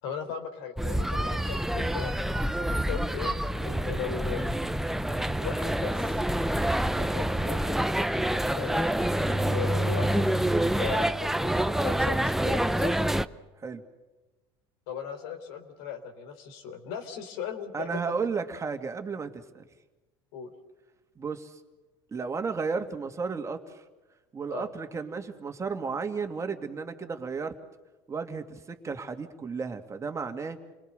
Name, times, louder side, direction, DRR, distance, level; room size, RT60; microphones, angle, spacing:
voice 1, 0.0-2.1 2.5-4.5 5.4-6.2 7.0-7.8 8.3-10.3 10.8-13.0 14.9-17.9 20.3-20.5 24.5-24.7, left 8 dB, 75° left, 7 dB, 4.1 m, -38 dB
sound 1, 0.8-13.3, right 1 dB, 5° right, 0.7 m, -27 dB
voice 2, 17.7-19.6 21.2-21.5 22.1-23.8 24.3-27.6 28.1-30.6, right 5 dB, 25° right, 6 dB, 2.4 m, -33 dB
29.5 x 20.5 x 6.8 m, 1.1 s
supercardioid pair, 100°, 13 cm